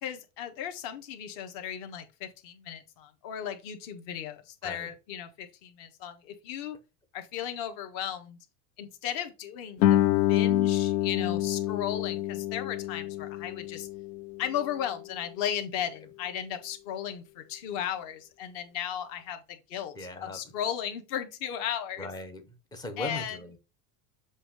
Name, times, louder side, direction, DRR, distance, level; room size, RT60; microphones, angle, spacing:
voice 1, 0.0-6.8 7.1-8.4 8.8-10.0 10.3-13.9 14.4-22.1 23.0-23.4, left 9 dB, 50° left, 1.5 m, -35 dB
Guitar, 9.8-15.2, left 13 dB, 80° left, 0.7 m, -27 dB
voice 2, 19.9-20.4 22.0-23.6, left 1 dB, 10° left, 0.5 m, -39 dB
7.5 x 2.8 x 4.8 m
supercardioid pair, 165°, 49 cm